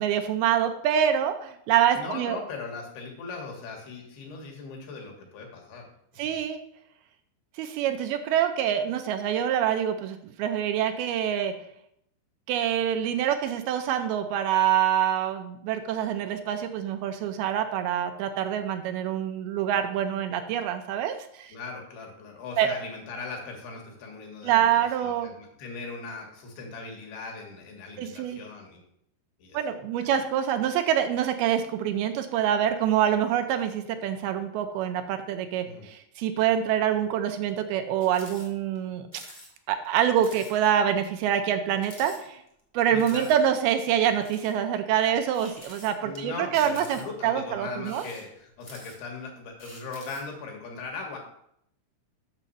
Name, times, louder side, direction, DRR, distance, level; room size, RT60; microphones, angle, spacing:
voice 1, 0.0-2.4 6.2-6.6 7.6-11.6 12.5-21.6 22.6-22.7 24.4-25.3 28.0-28.4 29.5-39.2 39.7-42.4 42.7-48.0, right 9 dB, 85° right, 7 dB, 2.5 m, -26 dB
voice 2, 1.9-5.9 6.2-6.4 21.5-28.8 29.4-29.6 30.0-30.2 35.6-35.9 42.9-43.3 46.0-51.2, left 4 dB, 75° left, 1 dB, 3.5 m, -39 dB
sound 1, 38.0-38.5 38.7-38.8 39.1-39.5 39.8-39.9 40.2-40.5 41.0-41.1 41.8-42.6 43.0-43.4 44.0-44.6 45.3-46.2 46.5-47.2 47.8-49.2 49.6-50.3, equal, 20° left, 0.9 m, -47 dB
7.3 x 6.7 x 5.6 m, 0.73 s
omnidirectional pair, 4.6 m